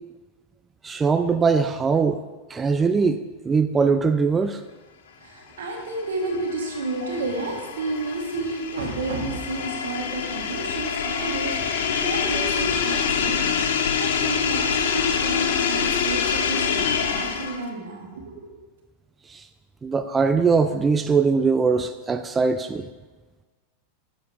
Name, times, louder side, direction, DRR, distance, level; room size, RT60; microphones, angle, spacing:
voice 1, 0.8-2.2 2.5-3.2 3.4-4.6 19.3-19.4 19.8-22.9, right 5 dB, 20° right, 9 dB, 0.3 m, -21 dB
voice 2, 5.2-18.5, right 3 dB, 85° right, 1 dB, 1.6 m, -31 dB
sound 1, 5.8-17.7, left 7 dB, 75° left, 0.7 m, -26 dB
7.4 x 7.0 x 3.4 m, 1.3 s
hypercardioid pair, 115°, 0 cm